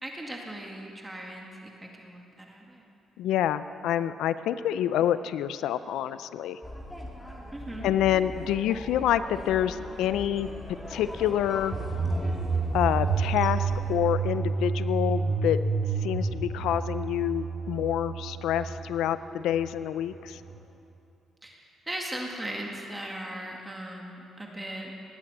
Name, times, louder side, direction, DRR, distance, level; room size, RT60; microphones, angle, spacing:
voice 1, 0.0-2.9 7.5-7.9 21.4-24.9, right 1 dB, 15° right, 0 dB, 2.1 m, -38 dB
voice 2, 3.2-6.6 7.8-10.5 10.9-11.7 12.7-15.6 16.0-20.4, left 11 dB, 85° left, 13 dB, 0.4 m, -27 dB
sound 1, 6.6-14.0, equal, 5° left, 2.3 m, -41 dB
sound 2, 11.7-20.6, right 4 dB, 45° right, 2.3 m, -30 dB
19.5 x 8.7 x 8.0 m, 2.8 s
cardioid pair, 90°, 0 cm